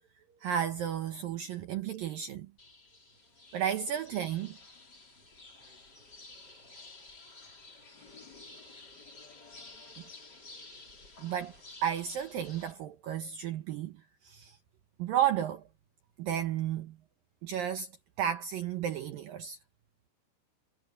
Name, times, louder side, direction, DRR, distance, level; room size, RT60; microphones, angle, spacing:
voice 1, 0.4-2.5 3.5-4.6 11.2-11.6 11.8-13.9 14.2-14.6 15.0-15.6 16.2-17.0 17.4-17.9 18.2-19.6, right 10 dB, 70° right, 2.3 m, -32 dB
sound 1, 2.6-12.7, left 3 dB, 25° left, 4.2 m, -52 dB
omnidirectional pair, 5.1 m